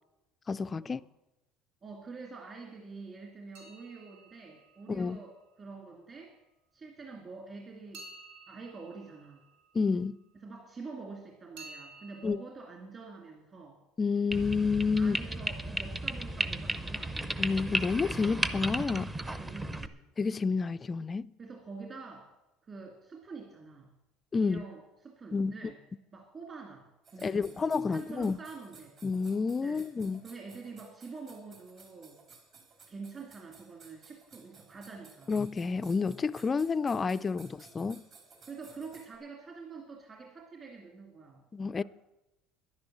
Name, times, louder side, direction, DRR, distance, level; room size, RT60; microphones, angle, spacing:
voice 1, 0.5-1.0 4.9-5.2 9.7-10.2 12.2-12.4 14.0-15.2 17.4-19.1 20.2-21.3 24.3-24.6 25.3-25.6 27.2-28.4 29.0-30.2 35.3-38.0 41.5-41.8, left 4 dB, 25° left, 0.3 m, -29 dB
voice 2, 1.8-6.3 6.7-8.0 8.5-9.4 10.4-13.8 15.0-17.2 19.3-20.0 21.4-22.3 22.7-23.9 24.4-25.8 26.1-26.9 27.1-28.9 29.6-29.8 30.2-32.2 32.9-35.3 38.5-41.4, right 4 dB, 30° right, 2.4 m, -46 dB
sound 1, 3.5-5.6 7.9-10.3 11.6-12.3, right 3 dB, 75° right, 4.2 m, -52 dB
sound 2, 14.3-19.9, right 1 dB, 15° right, 0.7 m, -34 dB
sound 3, 27.0-39.2, right 4 dB, 45° right, 3.8 m, -57 dB
11.0 x 10.5 x 7.7 m
cardioid pair, 125°, 0 cm